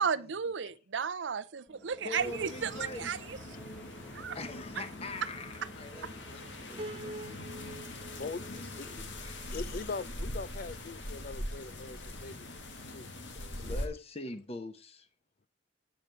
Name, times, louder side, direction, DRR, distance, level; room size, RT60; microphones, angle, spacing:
voice 1, 0.0-2.7 3.0-3.2 4.1-4.4, right 6 dB, 80° right, 0.6 m, -33 dB
sound 1, 1.7-13.2, right 1 dB, 5° left, 1.0 m, -54 dB
voice 2, 2.0-3.1 4.3-7.9 8.5-9.6 13.5-15.1, left 2 dB, 35° left, 1.0 m, -44 dB
sound 2, 2.1-13.9, left 1 dB, 75° left, 1.6 m, -42 dB
Piano, 6.8-10.0, right 1 dB, 30° right, 0.7 m, -46 dB
voice 3, 7.9-8.9 9.5-13.6, left 4 dB, 50° left, 0.5 m, -42 dB
9.0 x 5.1 x 6.2 m
head